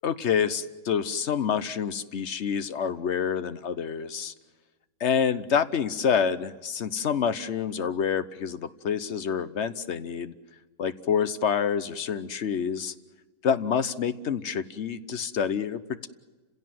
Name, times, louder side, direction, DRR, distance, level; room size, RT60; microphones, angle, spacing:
voice 1, 0.0-4.3 5.0-10.3 10.8-12.9 13.4-16.1, left 7 dB, 55° left, 12 dB, 1.2 m, -27 dB
29.5 x 16.5 x 7.7 m, 1.3 s
omnidirectional pair, 1.4 m